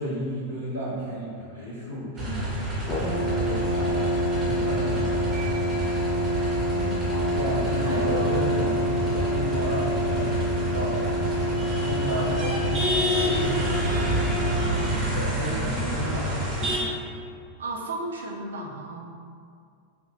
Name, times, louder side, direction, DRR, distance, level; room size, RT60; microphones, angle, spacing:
voice 1, 0.0-5.4 7.3-11.2 11.7-12.8 13.2-13.6 15.1-16.4, equal, 85° right, -10 dB, 1.0 m, -33 dB
sound 1, 2.2-16.8, equal, 20° right, 1.1 m, -28 dB
Brass instrument, 2.9-15.1, equal, 20° left, 0.6 m, -28 dB
voice 2, 6.7-7.1 7.5-8.2 12.1-12.4 13.1-13.8 17.6-19.0, right 2 dB, 65° right, -1 dB, 0.5 m, -35 dB
5.8 x 2.4 x 2.5 m, 2.3 s
figure-of-eight pair, 90°, 0 cm